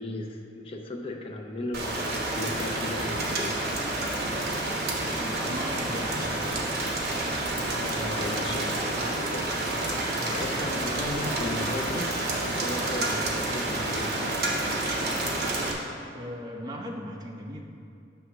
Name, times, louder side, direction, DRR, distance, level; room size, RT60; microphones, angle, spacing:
voice 1, 0.0-3.6 7.7-9.6 10.3-12.2 12.6-14.1, left 2 dB, 30° left, 1 dB, 0.6 m, -35 dB
Rain, 1.7-15.7, right 2 dB, 55° right, 1.1 m, -29 dB
voice 2, 5.0-6.5 10.3-10.5 16.1-17.6, equal, 20° right, 0 dB, 0.8 m, -38 dB
8.0 x 3.4 x 6.0 m, 2.5 s
head